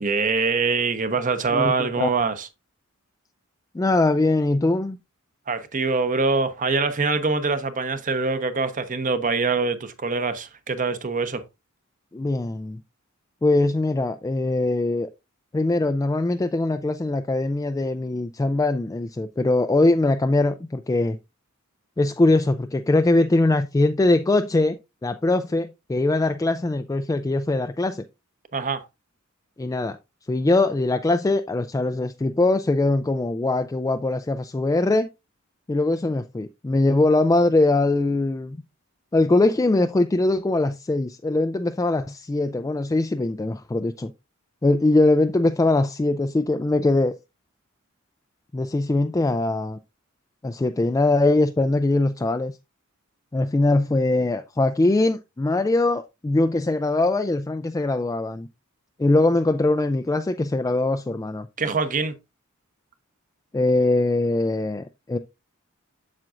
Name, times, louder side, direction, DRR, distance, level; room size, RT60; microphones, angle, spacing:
voice 1, 0.0-2.5 5.5-11.4 28.5-28.8 61.6-62.1, right 4 dB, 40° right, 0.9 m, -24 dB
voice 2, 1.5-2.1 3.7-5.0 12.1-12.8 13.4-15.1 15.5-21.2 22.0-28.0 29.6-30.0 30.3-35.1 35.7-38.6 39.1-44.1 44.6-47.1 48.5-49.8 50.4-52.5 53.3-58.5 59.0-61.5 63.5-65.2, left 2 dB, 15° left, 0.3 m, -22 dB
7.5 x 7.3 x 2.5 m
head